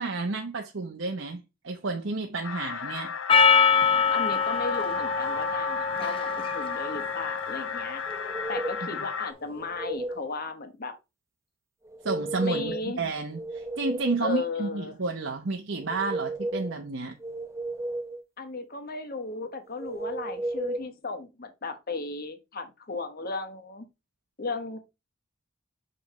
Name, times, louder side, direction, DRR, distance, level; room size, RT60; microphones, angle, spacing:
voice 1, 0.0-3.1 12.0-17.2, right 3 dB, 70° right, 0.9 m, -31 dB
sound 1, 2.4-9.3, left 6 dB, 85° left, 0.6 m, -34 dB
Percussion, 3.3-7.9, left 6 dB, 30° left, 0.5 m, -24 dB
voice 2, 4.1-8.0 8.5-10.9 12.4-13.0 14.2-15.0 18.4-23.9 24.4-24.8, left 3 dB, 50° left, 1.3 m, -35 dB
sound 2, 8.1-8.9 9.4-10.3 11.8-12.8 13.2-14.3 15.7-16.8 17.2-18.2 19.8-20.8, right 2 dB, 15° right, 0.7 m, -34 dB
6.8 x 5.2 x 3.1 m
head